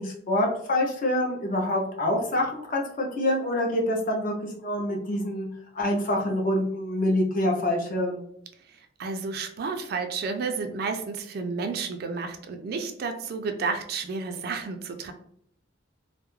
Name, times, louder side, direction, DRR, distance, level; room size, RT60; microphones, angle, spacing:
voice 1, 0.0-5.5 5.7-8.2, left 1 dB, 45° left, 0 dB, 0.6 m, -26 dB
voice 2, 9.0-15.1, right 4 dB, 50° right, 6 dB, 0.3 m, -31 dB
2.3 x 2.0 x 3.0 m, 0.68 s
head